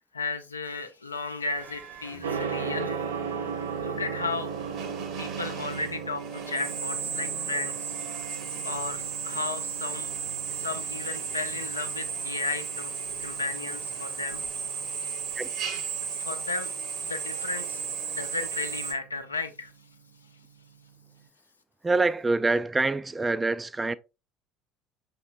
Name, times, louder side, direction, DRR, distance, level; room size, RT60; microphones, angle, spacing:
voice 1, 0.1-3.0 3.6-4.5 5.2-7.8 8.6-10.1 10.5-12.9 13.2-14.4 15.8-15.9 16.2-17.8 18.1-19.7, left 3 dB, 85° left, 0.5 m, -34 dB
Drill, 1.6-18.9, right 6 dB, 50° right, 1.1 m, -35 dB
Gong, 2.2-21.2, right 6 dB, 75° right, 0.5 m, -39 dB
voice 2, 21.8-23.9, right 3 dB, 15° right, 0.3 m, -25 dB
5.7 x 3.7 x 2.3 m
figure-of-eight pair, 65°, 0 cm